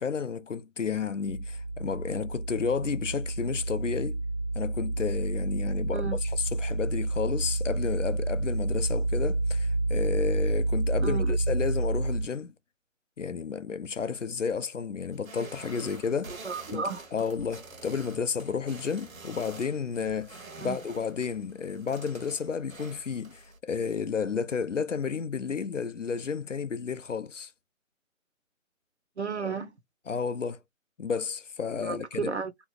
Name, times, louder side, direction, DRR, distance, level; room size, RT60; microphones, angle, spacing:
voice 1, 0.0-4.2 4.5-12.5 13.2-16.3 16.7-16.8 17.1-27.5 30.1-30.6 31.0-32.3, left 6 dB, 65° left, 0.5 m, -32 dB
sound 1, 1.3-12.2, right 2 dB, 40° left, 1.0 m, -29 dB
voice 2, 11.0-11.4 16.4-17.0 20.6-20.8 29.2-29.7 31.8-32.7, right 5 dB, 55° right, 0.7 m, -33 dB
sound 2, 15.1-23.6, right 3 dB, 75° right, 1.1 m, -47 dB
3.0 x 2.3 x 3.1 m
figure-of-eight pair, 180°, 41 cm